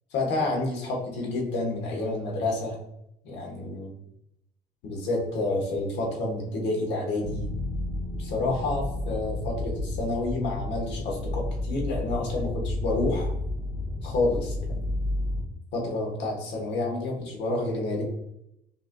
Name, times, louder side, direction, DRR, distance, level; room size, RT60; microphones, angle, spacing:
voice 1, 0.1-2.8 3.2-3.9 4.8-7.5 8.2-13.3 14.0-14.9 15.7-18.0, left 2 dB, 80° left, 0 dB, 1.2 m, -29 dB
sound 1, 7.2-15.4, left 2 dB, 35° left, 0.7 m, -31 dB
5.4 x 2.6 x 2.2 m, 0.80 s
cardioid pair, 160°, 18 cm